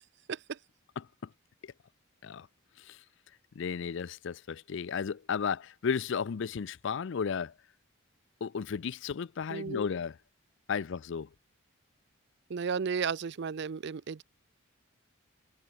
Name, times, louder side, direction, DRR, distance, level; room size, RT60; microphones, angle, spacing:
voice 1, 1.0-1.3 1.6-1.7 2.2-2.5 2.8-3.0 3.6-7.5 8.4-10.2 10.7-11.3, left 6 dB, 60° left, 0.4 m, -34 dB
voice 2, 9.5-9.8 12.5-14.2, right 6 dB, 55° right, 0.4 m, -34 dB
head